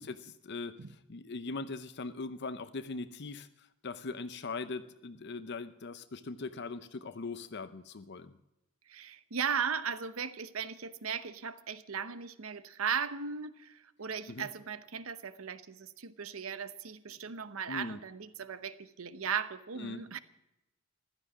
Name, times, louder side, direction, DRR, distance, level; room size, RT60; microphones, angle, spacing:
voice 1, 0.0-8.3 14.3-14.5 17.7-18.0 19.8-20.0, left 3 dB, 55° left, 11 dB, 0.7 m, -40 dB
voice 2, 8.9-20.2, right 6 dB, 80° right, 13 dB, 0.9 m, -37 dB
15.5 x 12.0 x 6.0 m, 0.93 s
head